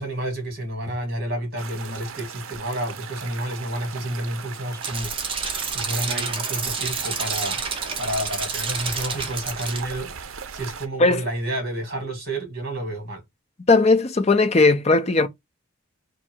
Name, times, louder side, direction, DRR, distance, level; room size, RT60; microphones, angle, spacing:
voice 1, 0.0-5.1 5.7-7.6 8.0-13.2, right 1 dB, 45° right, 1.9 m, -30 dB
sound 1, 1.6-10.9, right 6 dB, 70° right, 0.5 m, -38 dB
sound 2, 4.8-9.8, right 5 dB, 25° right, 0.6 m, -29 dB
voice 2, 13.7-15.3, left 3 dB, 30° left, 0.5 m, -17 dB
3.6 x 2.5 x 4.4 m
head